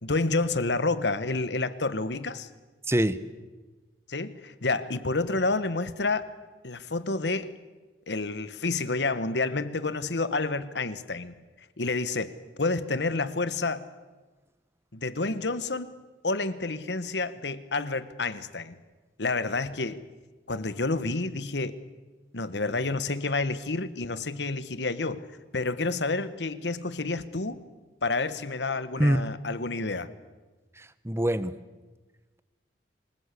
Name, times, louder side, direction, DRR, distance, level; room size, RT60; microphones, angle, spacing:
voice 1, 0.0-2.5 4.1-6.3 6.6-7.5 8.1-11.3 11.8-12.3 12.6-13.8 14.9-15.9 16.2-18.8 19.2-20.0 20.5-21.8 22.3-25.3 25.5-27.6 28.0-30.1, left 3 dB, 70° left, 13 dB, 1.4 m, -29 dB
voice 2, 2.9-3.2 29.0-29.2 30.8-31.5, right 1 dB, 15° right, 14 dB, 1.0 m, -24 dB
26.5 x 20.5 x 8.5 m, 1.2 s
head